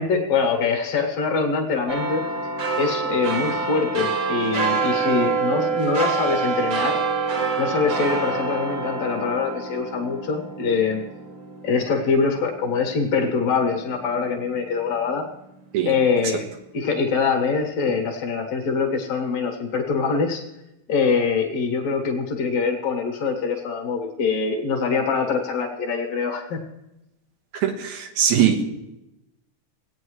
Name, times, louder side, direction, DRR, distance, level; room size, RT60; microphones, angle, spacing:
voice 1, 0.0-2.2 2.8-7.0 7.6-11.0 11.6-15.2 15.9-20.4 20.9-26.6, left 5 dB, 60° left, 0 dB, 2.3 m, -24 dB
sound 1, 1.9-12.6 13.1-13.2, right 4 dB, 50° right, 1.6 m, -26 dB
voice 2, 27.5-28.6, right 9 dB, 90° right, 3 dB, 2.5 m, -21 dB
17.5 x 9.1 x 3.1 m, 0.92 s
omnidirectional pair, 3.4 m